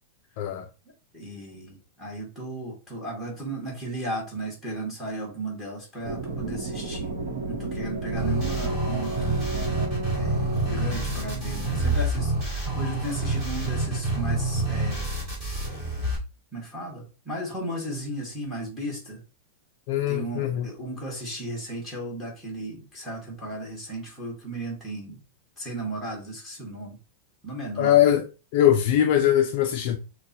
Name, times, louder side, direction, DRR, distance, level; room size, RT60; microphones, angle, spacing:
voice 1, 1.1-7.1 7.5-9.7 10.2-15.1 16.5-19.2 20.1-25.2 25.6-27.0 27.4-28.0, right 1 dB, ahead, 1.2 m, -35 dB
sound 1, 6.0-11.9, right 2 dB, 70° right, 0.9 m, -32 dB
sound 2, 8.2-16.2, right 2 dB, 15° right, 2.2 m, -27 dB
voice 2, 19.9-20.7 27.8-30.0, left 11 dB, 40° left, 0.4 m, -21 dB
6.4 x 2.1 x 2.7 m
supercardioid pair, 170°, 0 cm